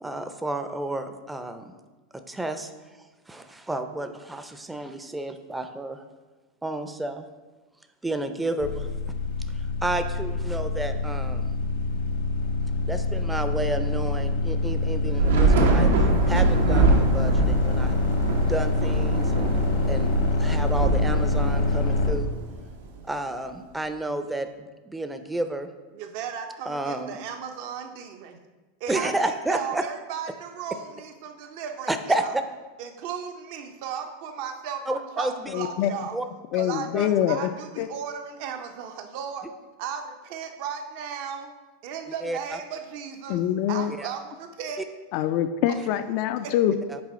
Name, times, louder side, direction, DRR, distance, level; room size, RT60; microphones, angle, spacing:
voice 1, 0.0-1.8 2.1-2.7 3.3-6.0 6.6-7.3 8.0-8.9 9.5-11.5 12.9-18.0 18.4-19.6 19.9-22.3 23.1-25.7 26.7-27.2 28.9-29.9 31.9-32.4 34.9-35.5 36.1-36.3 36.9-37.1 42.2-42.6 44.0-44.1 45.8-45.9 46.9-47.0, right 2 dB, 10° right, 9 dB, 0.5 m, -31 dB
sound 1, 8.6-22.1, left 3 dB, 75° left, 1.1 m, -25 dB
Thunder / Rain, 15.2-22.7, right 3 dB, 85° right, 0.8 m, -24 dB
voice 2, 25.9-28.4 28.8-32.3 32.8-36.2 36.6-39.5 39.8-41.5 41.8-43.4 43.7-44.8 45.7-45.8 46.4-46.5, right 7 dB, 60° right, 5 dB, 0.6 m, -35 dB
voice 3, 35.5-35.9 36.5-37.5 37.8-37.9 43.3-43.9 45.1-46.7, left 11 dB, 55° left, 10 dB, 0.3 m, -24 dB
6.2 x 4.3 x 4.2 m, 1.2 s
supercardioid pair, 120°, 0 cm